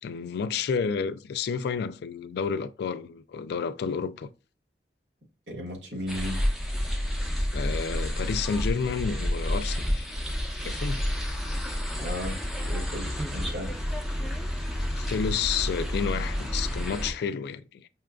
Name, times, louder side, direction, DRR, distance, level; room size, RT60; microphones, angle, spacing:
voice 1, 0.0-4.3 7.5-10.1 10.6-11.0 14.9-17.9, left 6 dB, 65° left, 0.3 m, -30 dB
voice 2, 5.5-6.4 12.0-13.7, left 1 dB, 75° right, 1.5 m, -35 dB
sound 1, 6.1-17.1, equal, ahead, 0.7 m, -30 dB
5.6 x 2.4 x 2.3 m
head